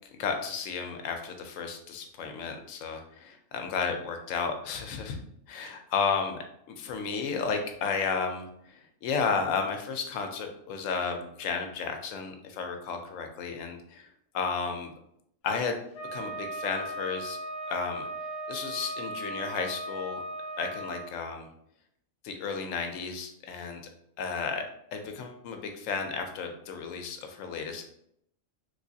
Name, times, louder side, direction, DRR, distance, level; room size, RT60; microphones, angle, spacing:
voice 1, 0.1-5.2 5.5-6.4 6.7-14.1 14.3-14.9 15.4-15.8 16.1-17.4 17.7-18.1 18.5-20.2 20.6-21.5 22.2-23.8 24.2-24.6 24.9-27.8, left 5 dB, 80° left, 5 dB, 1.0 m, -33 dB
Wind instrument woodwind instrument, 15.9-21.1, right 1 dB, 60° left, 0.8 m, -37 dB
3.3 x 3.1 x 2.6 m, 0.72 s
omnidirectional pair, 1.3 m